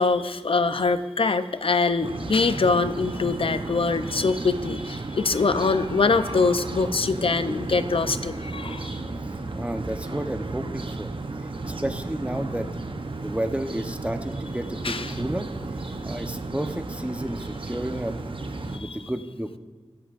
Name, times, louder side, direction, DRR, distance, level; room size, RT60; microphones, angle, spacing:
voice 1, 0.0-9.0 14.8-15.1 18.7-19.0, left 4 dB, 60° left, 11 dB, 0.7 m, -24 dB
sound 1, 2.0-18.8, right 3 dB, 55° right, 0.9 m, -34 dB
voice 2, 9.5-11.1 11.6-12.7 13.2-15.5 16.0-18.2 18.7-19.6, right 1 dB, 10° right, 7 dB, 1.0 m, -31 dB
23.0 x 8.1 x 2.6 m, 1.5 s
wide cardioid pair, 50°, 10 cm